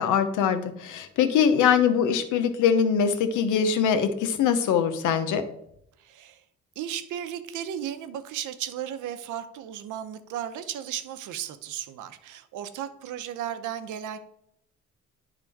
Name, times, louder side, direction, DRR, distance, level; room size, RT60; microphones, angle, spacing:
voice 1, 0.0-5.4, left 7 dB, 90° left, 8 dB, 0.9 m, -22 dB
voice 2, 6.0-6.4 6.8-14.2, right 10 dB, 85° right, 11 dB, 0.8 m, -35 dB
11.0 x 3.7 x 3.5 m, 0.76 s
cardioid pair, 90°, 30 cm